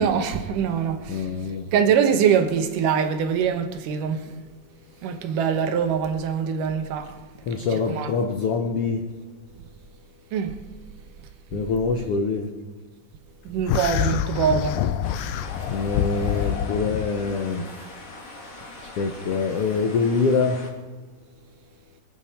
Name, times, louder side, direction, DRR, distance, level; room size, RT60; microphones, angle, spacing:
voice 1, 0.0-1.3 1.7-4.3 5.0-7.2 7.7-8.1 10.3-10.6 13.5-14.9, right 7 dB, 75° right, 2.6 m, -23 dB
voice 2, 1.1-1.7 7.5-9.0 11.5-12.5 15.7-17.8 19.0-20.6, left 4 dB, 70° left, 1.4 m, -25 dB
sound 1, 13.7-17.1, left 11 dB, 90° left, 2.3 m, -26 dB
sound 2, 15.0-20.7, left 2 dB, 50° left, 3.2 m, -42 dB
24.0 x 9.2 x 4.4 m
omnidirectional pair, 3.8 m